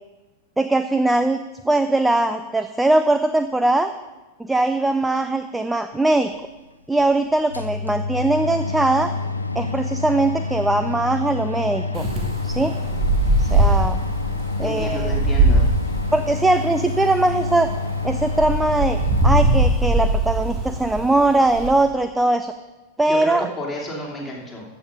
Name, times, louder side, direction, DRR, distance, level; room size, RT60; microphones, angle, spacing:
voice 1, 0.6-1.4 1.6-3.9 4.4-6.3 6.9-9.1 9.6-12.1 12.4-12.7 13.4-14.0 14.6-15.2 16.1-17.7 18.0-22.5 23.0-23.5, right 2 dB, 5° right, 10 dB, 0.4 m, -20 dB
sound 1, 6.3-6.4 7.0-7.1 7.4-19.5, left 3 dB, 85° left, 0.7 m, -28 dB
Wind, 11.9-21.8, right 1 dB, 30° right, 2.1 m, -21 dB
voice 2, 14.6-15.6 23.0-24.6, equal, 10° left, -4 dB, 3.2 m, -31 dB
14.0 x 7.0 x 5.2 m, 1.1 s
figure-of-eight pair, 90°, 0 cm